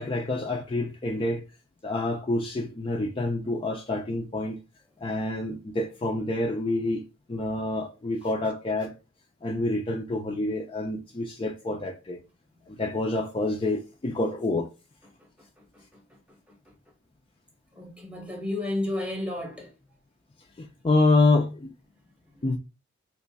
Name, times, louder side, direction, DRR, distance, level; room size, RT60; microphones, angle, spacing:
voice 1, 0.0-1.4 1.8-4.6 5.0-7.0 7.3-8.9 9.4-12.2 12.7-14.7 20.6-21.7 22.4-22.6, left 2 dB, 25° left, 0.4 m, -27 dB
voice 2, 15.0-16.9 17.7-19.8 20.7-20.8 22.0-22.6, left 1 dB, 5° right, 0.8 m, -35 dB
2.9 x 2.3 x 3.9 m
head